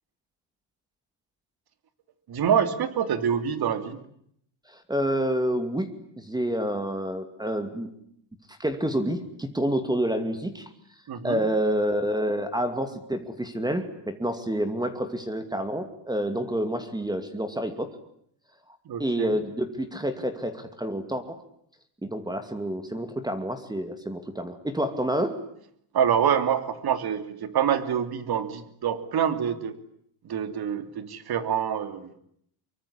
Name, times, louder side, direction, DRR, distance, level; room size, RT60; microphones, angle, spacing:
voice 1, 2.3-4.0 11.1-11.4 18.8-19.4 25.9-29.8 30.2-32.1, right 8 dB, 50° right, 11 dB, 3.0 m, -26 dB
voice 2, 4.7-5.9 6.2-7.9 8.6-10.7 11.2-17.9 19.0-21.4 22.0-25.4, right 1 dB, 10° right, 9 dB, 2.5 m, -28 dB
24.5 x 24.0 x 10.0 m, 0.69 s
cardioid pair, 125°, 49 cm